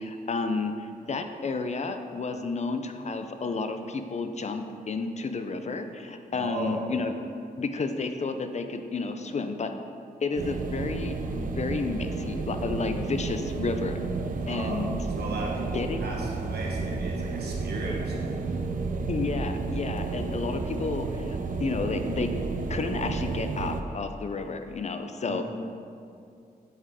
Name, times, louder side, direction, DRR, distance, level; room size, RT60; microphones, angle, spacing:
voice 1, 0.0-7.1 7.6-9.7 10.2-14.0 14.5-14.9 15.7-16.1 19.1-22.3 22.7-25.4, left 4 dB, 45° left, 7 dB, 0.5 m, -31 dB
voice 2, 6.3-6.8 14.4-14.9 15.2-18.5 25.3-25.4, right 2 dB, 90° right, -3 dB, 1.2 m, -36 dB
sound 1, 10.3-23.8, right 4 dB, 55° right, 0.5 m, -32 dB
7.9 x 4.8 x 3.6 m, 2.4 s
cardioid pair, 85°, 16 cm